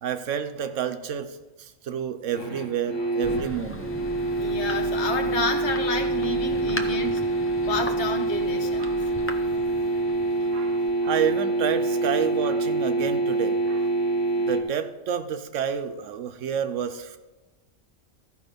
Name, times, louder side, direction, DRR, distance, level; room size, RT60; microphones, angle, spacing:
voice 1, 0.0-4.0 6.7-7.0 8.8-9.0 10.5-13.9 14.4-17.2, right 8 dB, 85° right, 9 dB, 1.1 m, -30 dB
sound 1, 2.3-14.6, right 2 dB, 80° left, 1.6 m, -26 dB
Thunder, 3.2-11.6, left 1 dB, 15° left, 0.5 m, -38 dB
voice 2, 4.3-7.2 7.7-9.0, left 3 dB, 65° left, 4 dB, 1.4 m, -30 dB
13.5 x 5.1 x 5.1 m, 1.1 s
omnidirectional pair, 1.3 m